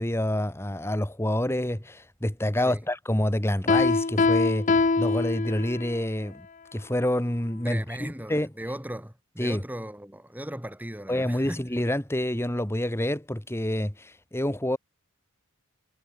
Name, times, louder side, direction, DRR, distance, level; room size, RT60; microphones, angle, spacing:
voice 1, 0.0-6.4 6.7-8.5 9.4-9.6 11.1-14.8, left 1 dB, 10° left, 1.6 m, -27 dB
Piano, 3.7-6.0, left 3 dB, 35° left, 0.7 m, -23 dB
voice 2, 7.6-11.7, right 1 dB, 10° right, 3.6 m, -37 dB
head